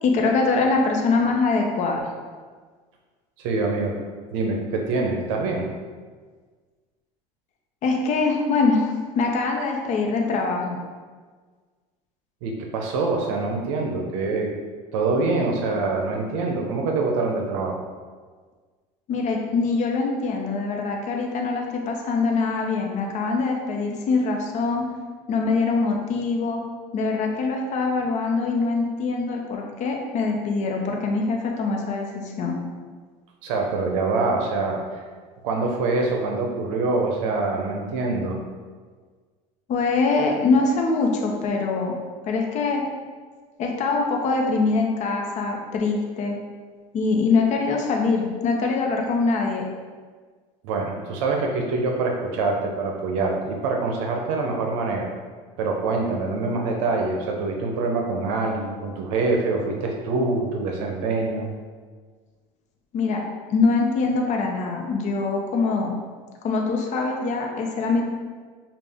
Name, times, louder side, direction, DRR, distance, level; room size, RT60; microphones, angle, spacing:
voice 1, 0.0-2.1 7.8-10.8 19.1-24.9 25.3-26.6 26.9-32.6 39.7-42.0 42.2-42.9 43.6-46.4 46.9-49.6 62.9-63.2 63.5-65.9 66.4-68.0, left 4 dB, 45° left, 1 dB, 0.8 m, -23 dB
voice 2, 3.4-3.9 4.3-5.7 12.4-14.5 14.9-17.8 33.4-34.8 35.4-38.4 50.6-55.1 55.6-61.5, right 3 dB, 80° right, 1 dB, 0.6 m, -25 dB
5.3 x 2.4 x 3.4 m, 1.5 s
supercardioid pair, 110°, 16 cm